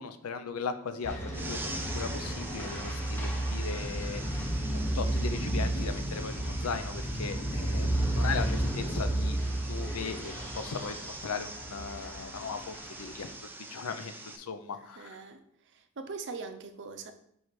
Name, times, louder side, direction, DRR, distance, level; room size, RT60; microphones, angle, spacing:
voice 1, 0.0-9.4 9.7-13.3 13.7-15.2, left 5 dB, 85° left, 0.5 m, -38 dB
sound 1, 1.0-13.3, right 1 dB, 10° left, 0.9 m, -32 dB
sound 2, 1.3-14.4, right 2 dB, 10° right, 0.5 m, -44 dB
voice 2, 15.0-15.4 15.7-17.1, right 4 dB, 55° right, 0.6 m, -41 dB
9.8 x 3.4 x 3.2 m
head